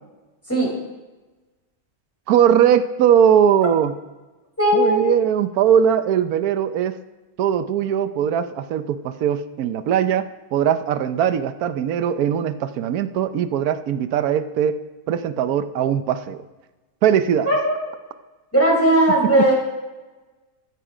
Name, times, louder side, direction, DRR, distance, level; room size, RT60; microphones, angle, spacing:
voice 1, 2.3-3.9 4.7-6.9 7.4-10.2 10.5-14.8 15.1-16.4 17.0-17.5, right 9 dB, 75° right, 11 dB, 1.2 m, -20 dB
voice 2, 4.6-5.1 17.5-17.8 18.5-19.5, right 1 dB, 10° left, -4 dB, 5.4 m, -17 dB
14.5 x 13.0 x 5.0 m, 1.2 s
omnidirectional pair, 1.6 m